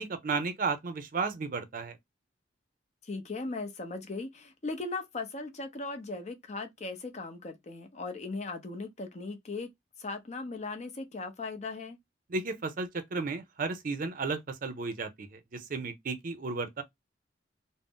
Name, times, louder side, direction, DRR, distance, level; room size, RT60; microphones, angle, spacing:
voice 1, 0.0-1.9 12.3-16.8, right 4 dB, 50° right, 0.5 m, -33 dB
voice 2, 3.0-9.7 10.0-12.0, left 3 dB, 40° left, 0.6 m, -38 dB
2.5 x 2.0 x 3.5 m
head